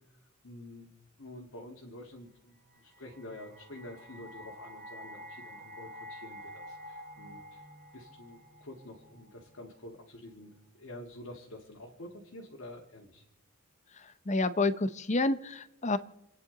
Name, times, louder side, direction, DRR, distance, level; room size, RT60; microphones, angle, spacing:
voice 1, 0.4-7.6 7.9-13.2, left 1 dB, 65° left, 0 dB, 2.1 m, -48 dB
sound 1, 2.7-9.8, equal, 40° right, 2.1 m, -49 dB
voice 2, 14.0-16.0, left 2 dB, 30° left, 14 dB, 0.7 m, -29 dB
29.5 x 10.0 x 4.0 m, 0.87 s
head